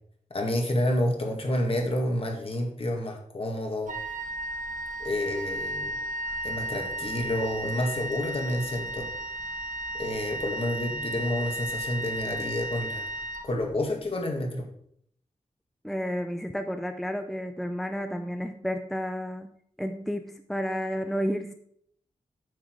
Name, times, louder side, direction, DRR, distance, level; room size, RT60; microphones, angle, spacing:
voice 1, 0.3-3.9 5.0-6.0 6.4-9.1 10.0-13.1 13.4-14.6, left 1 dB, 50° left, 2 dB, 2.0 m, -29 dB
Wind instrument woodwind instrument, 3.9-14.0, right 1 dB, 90° right, 1.4 m, -34 dB
voice 2, 15.8-21.5, equal, ahead, 7 dB, 0.6 m, -31 dB
8.6 x 6.1 x 4.7 m, 0.66 s
wide cardioid pair, 85°, 13 cm